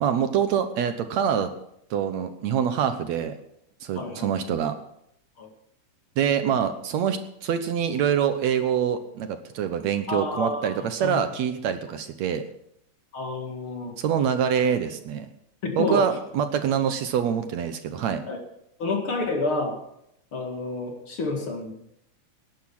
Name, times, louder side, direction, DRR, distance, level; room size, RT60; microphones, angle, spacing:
voice 1, 0.0-1.5 1.9-3.3 3.8-4.8 6.2-12.4 14.0-15.3 15.8-18.2, right 8 dB, 70° right, 9 dB, 2.1 m, -25 dB
voice 2, 4.0-4.3 5.4-5.5 10.1-11.2 13.1-14.0 15.6-16.0 18.3-18.4 18.8-19.8 20.3-21.7, left 3 dB, 45° left, 3 dB, 2.8 m, -29 dB
19.0 x 9.9 x 6.1 m, 0.75 s
omnidirectional pair, 3.5 m